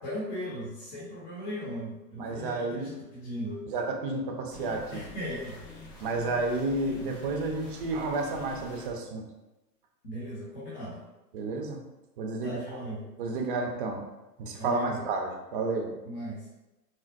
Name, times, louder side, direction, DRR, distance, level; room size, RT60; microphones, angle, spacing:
voice 1, 0.0-3.6 4.9-5.6 10.0-11.0 12.4-13.0 14.6-15.1 16.0-16.5, equal, 40° left, -8 dB, 1.1 m, -37 dB
voice 2, 2.2-2.9 3.7-5.0 6.0-9.2 11.3-11.8 12.2-12.8 13.2-14.0 14.4-15.9, right 3 dB, 35° right, 2 dB, 0.4 m, -31 dB
sound 1, 4.5-8.9, left 2 dB, 65° left, 1.4 m, -47 dB
4.1 x 2.1 x 2.5 m, 1.0 s
figure-of-eight pair, 110°, 49 cm